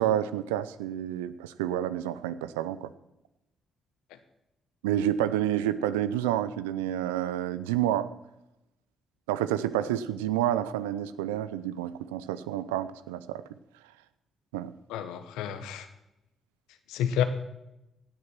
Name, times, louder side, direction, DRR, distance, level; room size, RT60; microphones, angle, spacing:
voice 1, 0.0-2.9 4.8-8.1 9.3-13.4 14.5-14.7, right 11 dB, 90° right, 15 dB, 0.5 m, -29 dB
voice 2, 14.9-15.9 16.9-17.2, left 9 dB, 80° left, 10 dB, 1.0 m, -29 dB
17.0 x 6.7 x 6.0 m, 0.91 s
hypercardioid pair, 45°, 0 cm